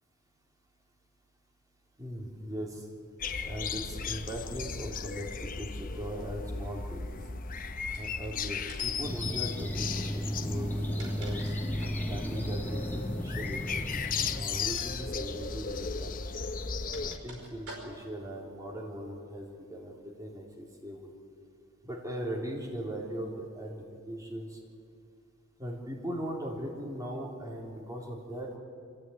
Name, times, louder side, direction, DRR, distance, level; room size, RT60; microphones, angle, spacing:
voice 1, 2.0-2.9 3.4-7.1 8.0-9.9 10.1-11.5 12.1-13.8 14.3-16.2 16.8-21.1 21.8-23.8 24.1-24.6 25.6-28.6, equal, 15° right, -2 dB, 3.6 m, -39 dB
sound 1, 3.2-17.2, left 5 dB, 40° left, 0.8 m, -36 dB
sound 2, 7.9-8.3 8.7-9.1 10.6-12.1 13.9-14.2 14.7-14.9 15.2-15.3 16.3-18.2, right 2 dB, 90° right, 5.1 m, -48 dB
sound 3, 9.0-14.4, equal, 10° left, 1.6 m, -34 dB
24.0 x 15.0 x 9.4 m, 2.3 s
head